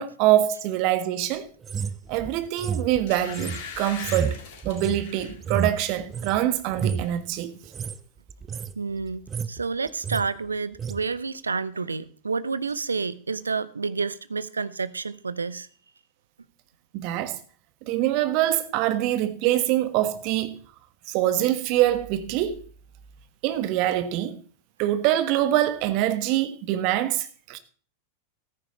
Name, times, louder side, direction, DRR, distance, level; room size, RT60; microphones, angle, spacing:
voice 1, 0.0-1.5 2.1-4.4 4.6-7.5 16.9-17.4 17.9-20.5 21.1-22.7 23.4-24.4 24.8-27.6, right 13 dB, 45° right, 1.5 m, -24 dB
sound 1, 1.6-6.4 6.7-7.1 7.6-8.0 8.3-8.7 9.1-9.6 9.9-10.3 10.8-11.0, right 7 dB, 20° right, 0.7 m, -31 dB
sound 2, 2.4-2.5 3.1-5.4 5.9-6.1 6.4-7.1 7.4-7.5, left 7 dB, 50° left, 3.3 m, -40 dB
voice 2, 8.8-15.7, right 4 dB, 75° right, 0.8 m, -29 dB
14.5 x 13.5 x 3.2 m
figure-of-eight pair, 90°, 0 cm